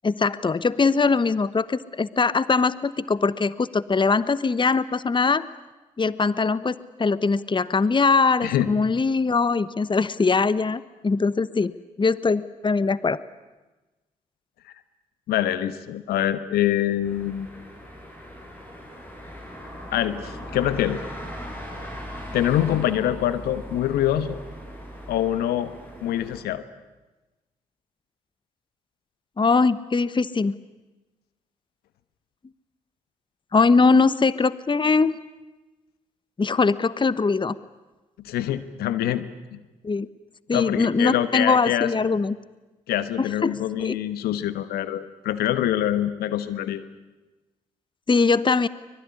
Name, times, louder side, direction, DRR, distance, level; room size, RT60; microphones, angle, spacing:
voice 1, 0.0-5.5 6.0-11.7 12.0-13.2 29.4-30.5 33.5-35.2 36.4-37.6 39.8-40.1 40.5-42.3 43.2-44.0 48.1-48.7, left 4 dB, 30° left, 17 dB, 1.0 m, -21 dB
voice 2, 15.3-17.5 19.9-21.0 22.3-24.4 25.1-25.7 26.0-26.6 38.2-39.2 39.5-39.6 40.5-42.1 42.9-46.8, left 12 dB, 75° left, 13 dB, 1.3 m, -25 dB
sound 1, 17.0-26.4, equal, 10° left, 8.0 m, -39 dB
24.0 x 21.5 x 9.8 m, 1.1 s
hypercardioid pair, 40°, 16 cm